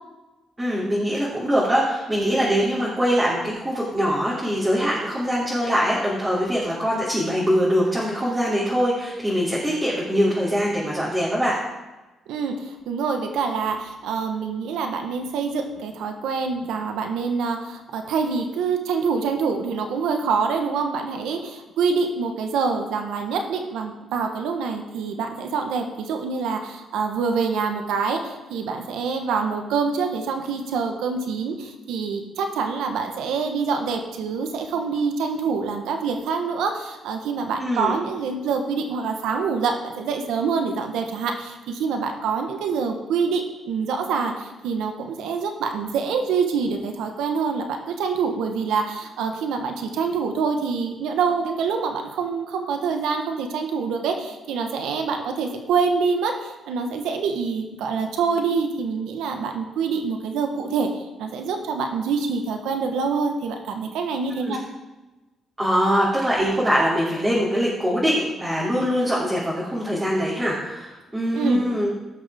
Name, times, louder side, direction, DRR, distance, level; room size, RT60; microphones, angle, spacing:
voice 1, 0.6-11.6 37.6-38.0 64.4-64.6 65.6-71.9, equal, 15° right, -8 dB, 2.9 m, -23 dB
voice 2, 12.3-64.6 71.3-71.6, right 5 dB, 85° right, 4 dB, 1.2 m, -26 dB
16.5 x 6.4 x 3.6 m, 1.1 s
cardioid pair, 90°, 0 cm